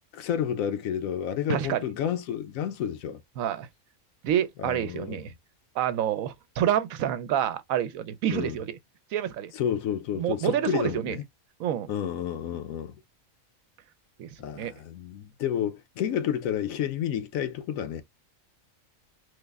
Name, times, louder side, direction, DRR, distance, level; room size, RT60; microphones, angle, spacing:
voice 1, 0.1-3.2 4.6-5.2 8.3-8.6 9.5-11.2 11.9-12.9 14.4-18.0, left 9 dB, 90° left, 1.1 m, -30 dB
voice 2, 1.5-1.8 3.4-3.7 4.2-5.3 5.7-8.8 9.1-9.5 10.2-11.2 11.6-11.9 14.2-14.7, right 10 dB, 80° right, 1.0 m, -28 dB
3.3 x 2.0 x 3.3 m
omnidirectional pair, 1.4 m